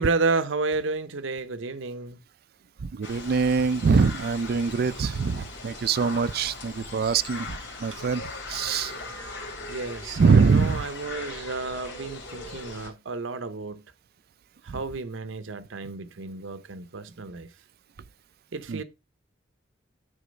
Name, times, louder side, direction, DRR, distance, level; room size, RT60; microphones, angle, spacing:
voice 1, 0.0-2.2 6.9-7.0 7.9-8.0 9.7-13.8 14.6-17.5 18.5-18.8, right 3 dB, 85° right, 0.7 m, -31 dB
voice 2, 2.8-8.2 8.5-8.9 10.2-10.8 14.7-14.8 18.7-18.8, right 5 dB, 55° right, 0.4 m, -23 dB
sound 1, 3.0-12.9, left 3 dB, 65° left, 2.7 m, -39 dB
9.9 x 3.8 x 5.2 m
head